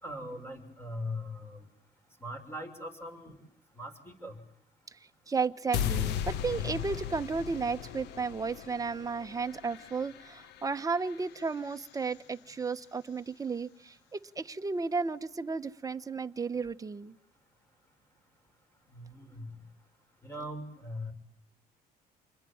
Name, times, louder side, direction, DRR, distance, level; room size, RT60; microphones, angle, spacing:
voice 1, 0.0-1.6 2.2-3.4 3.8-4.4 18.9-19.5 20.2-21.1, left 1 dB, 15° left, 7 dB, 6.2 m, -40 dB
voice 2, 5.3-17.1, right 4 dB, 20° right, 9 dB, 1.2 m, -33 dB
sound 1, 5.7-11.9, left 9 dB, 85° left, 1.2 m, -37 dB
28.5 x 21.0 x 8.7 m, 0.74 s
cardioid pair, 110°, 17 cm